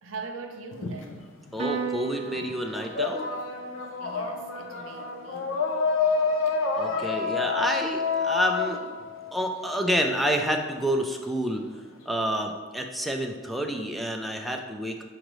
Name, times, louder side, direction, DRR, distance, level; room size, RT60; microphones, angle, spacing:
voice 1, 0.0-1.3 4.0-5.6 6.9-7.5, right 3 dB, 75° right, 4 dB, 0.6 m, -42 dB
sound 1, 0.7-2.0 2.3-10.1, left 4 dB, 65° left, 0.6 m, -28 dB
voice 2, 1.5-3.3 6.8-8.8 9.3-11.6 12.1-15.0, equal, ahead, 3 dB, 0.4 m, -28 dB
Piano, 1.6-8.3, right 5 dB, 35° right, 0.9 m, -40 dB
6.4 x 4.9 x 3.1 m, 1.5 s
head